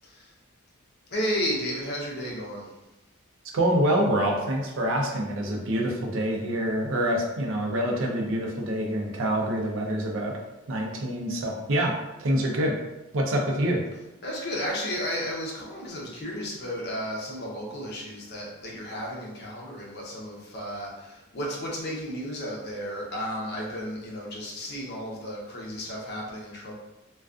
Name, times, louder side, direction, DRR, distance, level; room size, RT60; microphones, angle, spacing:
voice 1, 1.1-2.7 14.2-26.7, equal, 50° left, -3 dB, 0.6 m, -33 dB
voice 2, 3.5-10.4 10.7-11.9 12.2-12.8 13.1-13.8, right 1 dB, 60° right, 1 dB, 0.5 m, -26 dB
2.3 x 2.2 x 2.4 m, 0.97 s
head